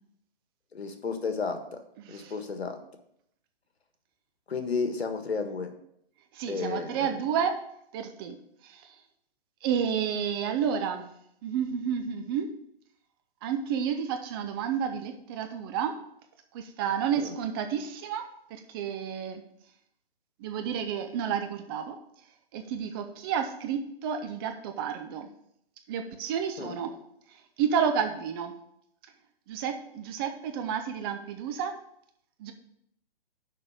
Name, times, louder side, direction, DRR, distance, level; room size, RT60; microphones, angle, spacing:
voice 1, 0.7-1.6 2.1-2.8 4.5-5.7 6.5-7.2 17.2-17.4 26.6-26.8, left 4 dB, 85° left, 6 dB, 1.6 m, -32 dB
voice 2, 6.3-7.6 7.9-8.4 8.6-8.9 9.6-11.1 11.4-12.5 13.4-15.9 16.5-18.2 18.5-19.4 20.4-22.0 22.5-25.3 25.9-27.0 27.6-28.5 29.5-31.7 32.4-32.5, right 7 dB, 25° right, 6 dB, 0.6 m, -30 dB
6.6 x 5.4 x 6.9 m, 0.74 s
hypercardioid pair, 140°, 31 cm